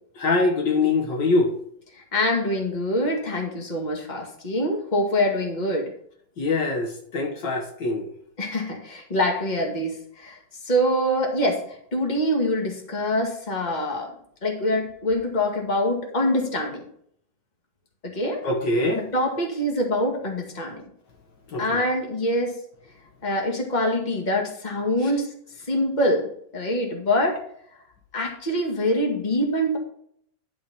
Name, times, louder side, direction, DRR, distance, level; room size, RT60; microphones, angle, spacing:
voice 1, 0.2-1.6 6.4-8.1 18.4-19.1 21.5-21.8, left 3 dB, 70° left, 2 dB, 2.0 m, -23 dB
voice 2, 2.1-5.9 8.4-10.4 10.6-11.7 11.9-14.1 14.4-16.8 18.0-18.4 19.1-20.8 21.6-22.6 23.2-25.3 25.7-27.4 28.1-29.8, left 1 dB, 25° left, 1 dB, 2.0 m, -24 dB
11.0 x 5.0 x 5.4 m, 0.65 s
omnidirectional pair, 2.0 m